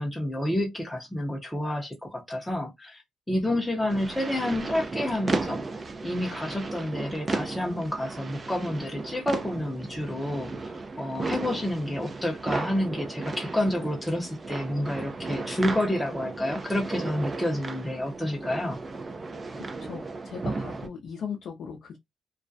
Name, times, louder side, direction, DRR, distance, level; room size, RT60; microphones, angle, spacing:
voice 1, 0.0-3.0 3.3-5.6 6.0-18.8, left 1 dB, 5° left, 0.6 m, -29 dB
sound 1, 3.9-20.9, right 3 dB, 30° right, 0.4 m, -35 dB
voice 2, 19.5-22.0, left 7 dB, 65° left, 0.5 m, -38 dB
2.3 x 2.1 x 2.5 m
cardioid pair, 90°, 0 cm